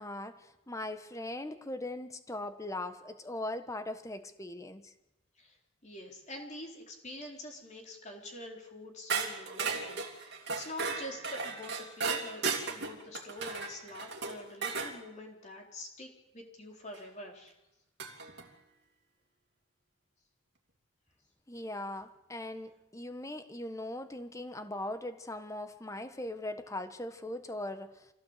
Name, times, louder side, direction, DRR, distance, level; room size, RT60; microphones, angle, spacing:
voice 1, 0.0-4.9 21.5-28.1, left 1 dB, 15° left, 10 dB, 1.3 m, -40 dB
voice 2, 5.8-17.5, left 1 dB, 35° left, 2 dB, 4.1 m, -46 dB
sound 1, 9.1-14.9 16.9-17.0 18.0-18.4, right 4 dB, 55° right, 3.0 m, -35 dB
25.5 x 16.5 x 8.2 m, 0.90 s
head